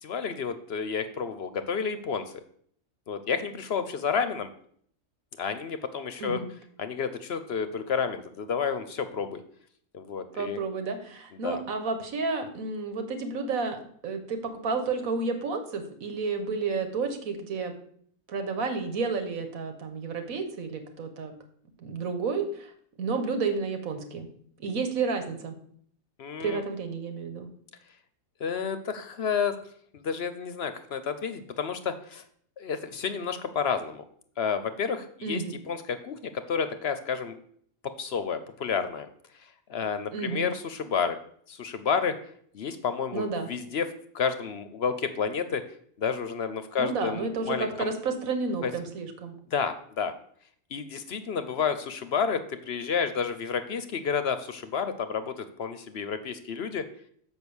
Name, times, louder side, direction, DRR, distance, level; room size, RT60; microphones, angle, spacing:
voice 1, 0.0-2.4 3.1-4.5 5.4-6.4 6.8-9.4 9.9-10.6 11.3-11.6 26.2-26.6 28.4-29.5 29.9-32.2 32.6-34.0 34.4-37.4 37.8-39.1 39.3-41.2 41.5-42.2 42.5-43.9 44.1-45.6 46.0-47.9 48.6-48.7 49.5-50.1 50.7-56.9, left 6 dB, 55° left, 10 dB, 0.8 m, -30 dB
voice 2, 10.3-17.7 18.3-21.3 21.8-22.7 23.0-24.3 24.6-25.5 26.4-27.5 35.2-35.6 40.1-40.5 43.1-43.5 46.8-49.4, right 4 dB, 90° right, 6 dB, 1.7 m, -31 dB
6.3 x 5.4 x 7.0 m, 0.62 s
omnidirectional pair, 1.4 m